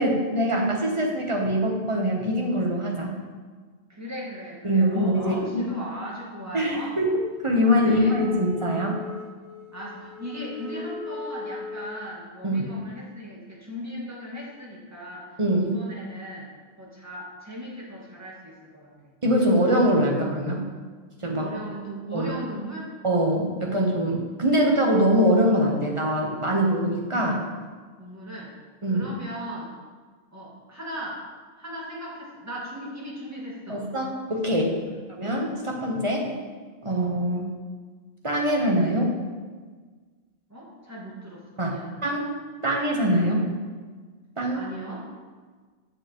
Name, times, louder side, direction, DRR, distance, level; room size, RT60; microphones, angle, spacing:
voice 1, 0.0-3.1 4.6-5.7 6.5-9.0 12.4-12.6 15.4-15.7 19.2-20.6 21.2-21.5 22.1-22.3 23.0-27.4 28.8-29.1 33.7-34.8 35.2-36.3 36.8-37.5 38.2-39.1 41.6-42.3 42.6-43.5 44.4-44.6, equal, 30° right, -1 dB, 1.0 m, -23 dB
voice 2, 3.9-6.9 7.5-8.1 9.7-15.3 15.6-16.5 16.8-18.9 21.4-22.9 28.0-28.5 28.9-29.7 30.3-31.2 31.6-33.8 34.9-35.0 36.9-37.1 40.5-41.9 44.5-45.0, equal, 15° right, -5 dB, 1.7 m, -38 dB
Wind instrument woodwind instrument, 7.9-12.0, left 3 dB, 75° right, 1.2 m, -38 dB
8.0 x 7.2 x 3.0 m, 1.5 s
omnidirectional pair, 1.1 m